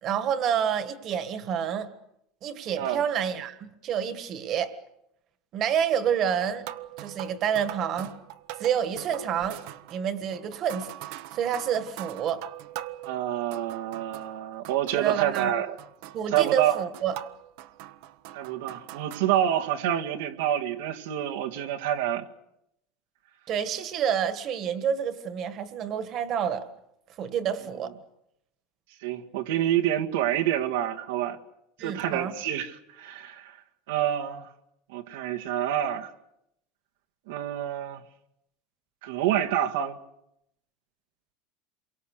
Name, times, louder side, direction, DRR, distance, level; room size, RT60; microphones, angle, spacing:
voice 1, 0.0-1.9 2.4-4.8 5.5-6.7 7.0-8.2 8.5-9.6 9.9-12.4 14.9-15.6 16.1-17.2 23.5-26.7 27.2-27.9 31.8-32.3, right 8 dB, 30° right, 1.7 m, -28 dB
sound 1, 6.4-14.4 14.6-19.3, right 14 dB, 55° right, 1.0 m, -43 dB
voice 2, 13.0-15.7 16.3-16.8 18.3-22.3 29.0-31.4 31.8-33.6 33.9-34.5 34.9-36.1 37.3-38.0 39.0-40.0, right 11 dB, 85° right, 2.1 m, -27 dB
28.5 x 24.0 x 6.6 m
cardioid pair, 175°, 0 cm